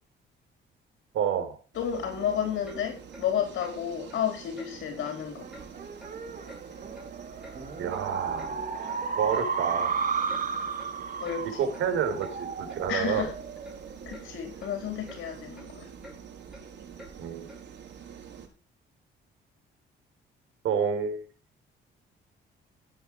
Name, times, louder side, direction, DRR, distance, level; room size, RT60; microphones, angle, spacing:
voice 1, 1.1-1.6 7.8-8.6 9.2-9.9 11.6-13.3 17.2-17.5 20.6-21.2, right 7 dB, 85° right, 4.2 m, -29 dB
voice 2, 1.7-5.5 11.2-11.7 12.9-13.3 14.1-15.9, left 8 dB, 75° left, 4.3 m, -31 dB
sound 1, 1.7-18.5, right 7 dB, 65° right, 5.4 m, -46 dB
Clock, 2.6-2.8 3.1-3.3 3.6-3.8 4.1-4.2 4.6-4.7 5.0-5.2 5.5-5.7 6.0-6.2 6.5-6.6 6.9-7.6 7.9-8.0 8.4-8.5 8.9-9.0 9.3-9.5 9.8-10.0 10.3-10.4 10.8-10.9 11.2-11.4 11.7-11.9 12.2-12.4 12.7-12.8 13.2-13.3 13.6-13.8 14.1-14.3 14.6-14.7 15.1-15.2 15.5-15.7 16.0-16.2 16.5-16.6 17.0-17.1 17.5-17.6, equal, 5° right, 6.9 m, -48 dB
sound 2, 5.4-14.2, right 5 dB, 45° right, 5.6 m, -34 dB
16.0 x 9.3 x 4.8 m
cardioid pair, 90°, 20 cm